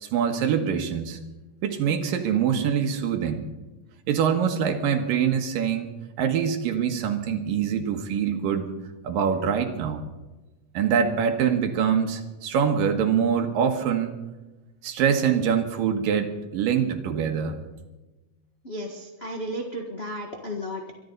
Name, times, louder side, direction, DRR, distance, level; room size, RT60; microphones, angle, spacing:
voice 1, 0.0-1.2 1.6-3.4 4.1-5.9 6.2-8.7 9.0-10.0 10.7-14.1 14.8-17.6, right 7 dB, 85° right, 5 dB, 3.2 m, -24 dB
voice 2, 18.6-20.9, equal, 40° left, 1 dB, 0.9 m, -34 dB
23.5 x 12.5 x 4.0 m, 1.1 s
omnidirectional pair, 3.9 m